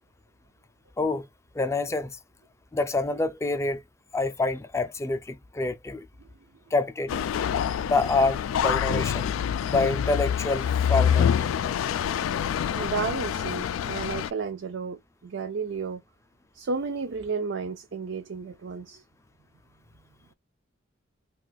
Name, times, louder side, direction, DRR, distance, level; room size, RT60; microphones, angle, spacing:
voice 1, 1.5-2.2 2.7-3.8 4.1-6.0 6.7-7.2 7.8-9.3 9.6-11.3, left 3 dB, 15° left, 0.4 m, -27 dB
sound 1, 7.1-14.3, left 8 dB, 85° left, 0.3 m, -26 dB
voice 2, 12.7-16.0 16.5-19.0, right 5 dB, 60° right, 0.4 m, -32 dB
2.4 x 2.4 x 4.0 m
head